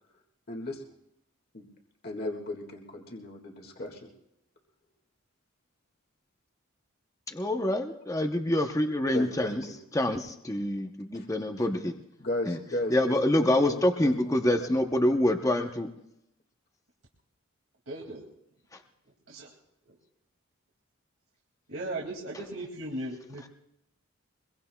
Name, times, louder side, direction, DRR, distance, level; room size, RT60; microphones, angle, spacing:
voice 1, 0.5-0.8 1.5-1.7 2.0-4.1 9.1-9.7 11.1-11.3 11.6-11.7 12.2-14.7, left 1 dB, 45° left, 2 dB, 1.9 m, -36 dB
voice 2, 7.3-9.6 9.9-10.2 10.5-11.9 12.5-12.6 12.9-15.9, left 1 dB, 15° left, 5 dB, 0.7 m, -26 dB
voice 3, 17.9-18.2 19.0-19.5 19.8-20.0 21.7-23.5, right 1 dB, 75° right, -3 dB, 2.2 m, -38 dB
24.0 x 22.0 x 2.3 m, 0.83 s
head